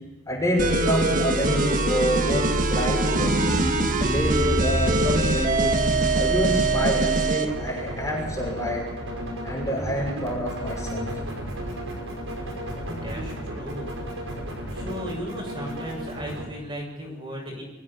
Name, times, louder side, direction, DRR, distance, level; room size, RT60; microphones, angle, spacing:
voice 1, 0.3-3.6 4.0-5.7 6.1-8.8 9.4-11.1, equal, 15° left, -3 dB, 6.2 m, -27 dB
sound 1, 0.6-7.5, right 2 dB, 40° right, 1.6 m, -22 dB
sound 2, 7.4-16.5, equal, 70° right, 5.2 m, -34 dB
voice 2, 12.9-14.0 14.7-17.6, equal, 25° right, -1 dB, 6.8 m, -36 dB
23.5 x 16.0 x 7.3 m, 1.1 s
head